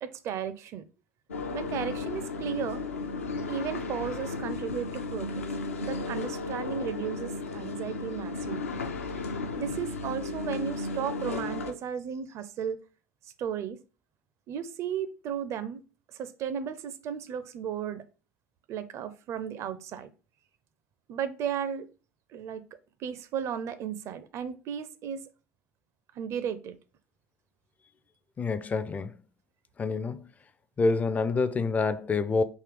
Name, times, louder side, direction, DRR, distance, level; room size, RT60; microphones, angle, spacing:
voice 1, 0.0-0.9 1.5-2.8 3.5-5.4 5.8-8.6 9.6-12.8 13.4-13.8 14.5-15.8 16.2-18.0 18.7-20.1 21.1-21.9 22.3-22.6 23.0-25.2 26.2-26.8, right 8 dB, 40° right, 0.5 m, -34 dB
sound 1, 1.3-11.7, left 3 dB, 75° left, 0.5 m, -34 dB
voice 2, 28.4-29.1 29.8-30.2 30.8-32.4, left 4 dB, 20° left, 0.4 m, -27 dB
3.7 x 2.8 x 4.6 m
figure-of-eight pair, 70°, 8 cm